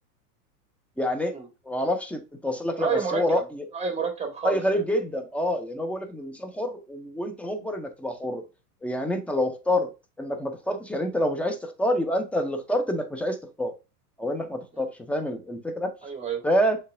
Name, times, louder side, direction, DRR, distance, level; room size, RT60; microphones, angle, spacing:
voice 1, 1.0-1.3 1.7-3.6 4.4-8.4 8.8-9.9 10.2-13.7 14.2-15.9 16.4-16.8, equal, 5° left, 0.4 m, -27 dB
voice 2, 2.8-3.4 3.7-4.6 16.0-16.4, right 5 dB, 15° right, 1.5 m, -29 dB
6.5 x 3.3 x 2.5 m
hypercardioid pair, 90°, 48 cm